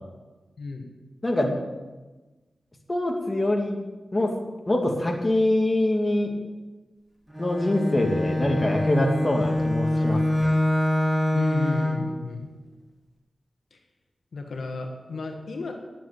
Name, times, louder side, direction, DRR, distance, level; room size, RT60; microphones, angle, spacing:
voice 1, 0.6-0.9 11.3-12.5 13.7-13.8 14.3-15.7, left 3 dB, 80° left, 3 dB, 1.5 m, -33 dB
voice 2, 1.2-1.6 2.9-3.8 4.1-4.3 4.7-6.3 7.4-10.5, left 1 dB, 25° left, 1 dB, 2.1 m, -24 dB
Bowed string instrument, 7.3-12.1, left 1 dB, ahead, 2.8 m, -25 dB
10.5 x 7.3 x 9.3 m, 1.2 s
wide cardioid pair, 80°, 0 cm